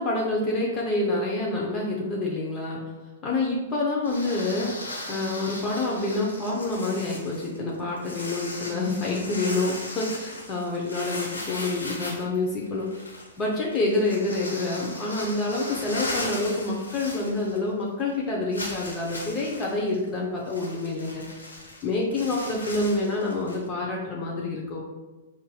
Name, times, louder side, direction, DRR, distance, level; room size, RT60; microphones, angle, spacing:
voice 1, 0.0-2.8 3.2-12.9 13.4-21.5 21.8-24.8, left 2 dB, 25° left, -3 dB, 0.7 m, -27 dB
sound 1, 4.0-17.8 18.1-18.2 18.5-23.7, left 2 dB, 85° left, 0.9 m, -38 dB
5.3 x 2.6 x 2.3 m, 1.2 s
figure-of-eight pair, 105°, 0 cm